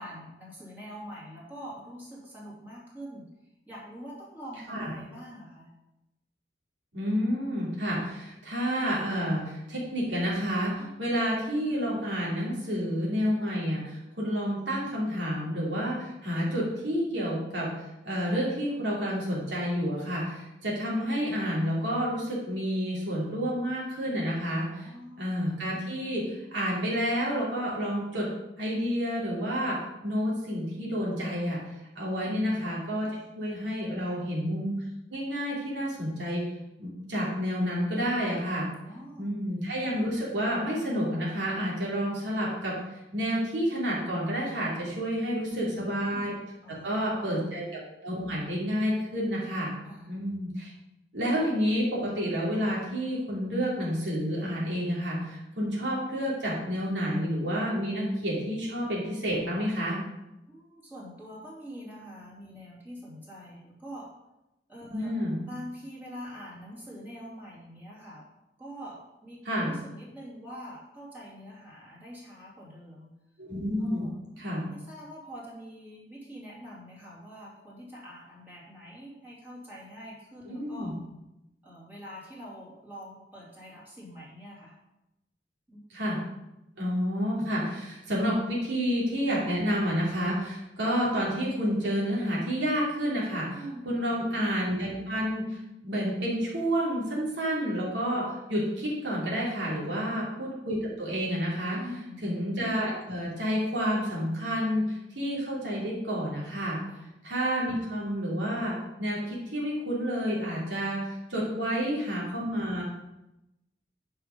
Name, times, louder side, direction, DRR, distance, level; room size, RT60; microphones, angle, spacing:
voice 1, 0.0-3.2 3.7-5.7 10.8-10.9 24.7-25.3 32.2-32.7 34.0-34.2 38.8-39.4 45.3-46.0 46.6-47.2 49.8-50.2 60.5-64.1 64.7-65.1 65.4-68.3 68.6-73.1 73.8-74.4 74.7-80.9 81.6-84.8 85.7-85.8 93.5-94.3 99.8-100.1 101.7-102.3 106.9-107.1 111.6-112.0, equal, 10° right, -6 dB, 2.8 m, -45 dB
voice 2, 6.9-17.7 18.0-24.9 25.2-28.3 28.6-29.8 30.0-33.1 33.3-34.8 35.1-36.4 36.8-38.7 39.2-46.3 46.8-47.7 48.0-49.7 50.1-50.7 51.1-60.0 64.9-65.4 69.4-69.7 73.4-74.1 74.4-74.6 80.5-80.9 85.9-86.2 86.8-93.6 93.8-101.8 102.2-106.8 107.2-112.8, equal, 75° right, -5 dB, 3.0 m, -29 dB
9.1 x 5.7 x 5.2 m, 0.91 s
head